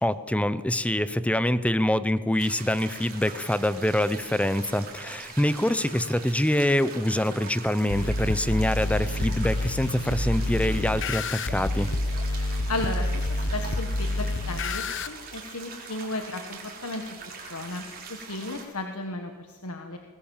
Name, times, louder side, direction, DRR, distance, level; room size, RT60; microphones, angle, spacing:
voice 1, 0.0-11.9, left 1 dB, 5° left, 14 dB, 0.7 m, -25 dB
sound 1, 2.4-18.7, right 5 dB, 45° right, 4.4 m, -43 dB
sound 2, 7.9-15.1, left 2 dB, 60° left, 1.1 m, -28 dB
voice 2, 12.7-17.0 17.5-20.0, left 2 dB, 85° left, 4 dB, 1.6 m, -34 dB
23.5 x 19.5 x 7.4 m, 1.5 s
head